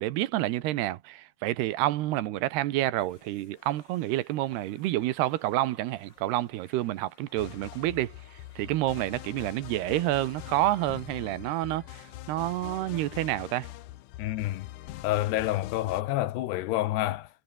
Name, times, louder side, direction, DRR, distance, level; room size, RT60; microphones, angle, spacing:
voice 1, 0.0-8.2 8.6-13.7, right 15 dB, 85° right, 3.1 m, -29 dB
sound 1, 3.0-12.2, left 3 dB, 25° left, 5.9 m, -60 dB
sound 2, 7.3-16.0, left 15 dB, 75° left, 1.9 m, -44 dB
voice 2, 14.2-14.7 15.0-17.3, left 15 dB, 90° left, 3.2 m, -28 dB
omnidirectional pair, 4.7 m